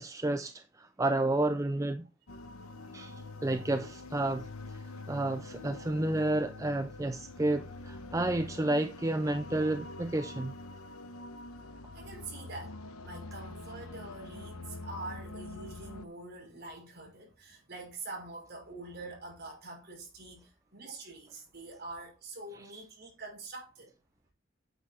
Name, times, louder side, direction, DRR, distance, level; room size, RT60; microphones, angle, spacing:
voice 1, 0.0-2.1 2.9-3.1 3.4-4.8 5.1-10.5, right 2 dB, 15° right, 0.4 m, -31 dB
sound 1, 2.3-16.0, left 2 dB, 90° left, 1.0 m, -45 dB
voice 2, 11.9-12.8 13.0-23.9, right 2 dB, 45° right, 5.2 m, -45 dB
9.0 x 6.6 x 4.3 m
head